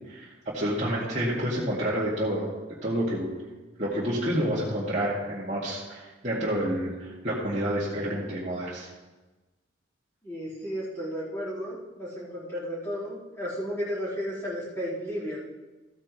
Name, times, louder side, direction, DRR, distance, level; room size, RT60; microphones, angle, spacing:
voice 1, 0.1-2.5 2.8-3.3 3.8-8.9, equal, 40° right, -9 dB, 2.2 m, -29 dB
voice 2, 10.2-15.4, equal, 15° left, -11 dB, 4.2 m, -33 dB
14.5 x 9.4 x 3.2 m, 1.2 s
head